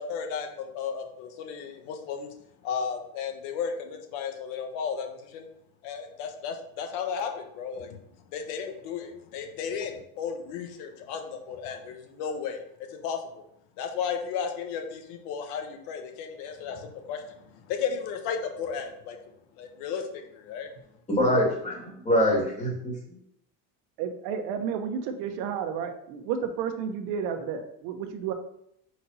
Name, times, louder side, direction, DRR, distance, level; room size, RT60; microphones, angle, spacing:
voice 1, 0.0-2.3 2.6-5.5 5.8-8.0 8.3-12.6 12.9-13.4 13.8-19.2 19.6-20.7, left 6 dB, 85° left, 5 dB, 1.3 m, -34 dB
voice 2, 21.1-22.9, equal, 20° left, -3 dB, 2.3 m, -24 dB
voice 3, 24.0-28.3, right 7 dB, 80° right, 6 dB, 1.1 m, -31 dB
5.4 x 4.2 x 5.6 m, 0.74 s
cardioid pair, 155°, 38 cm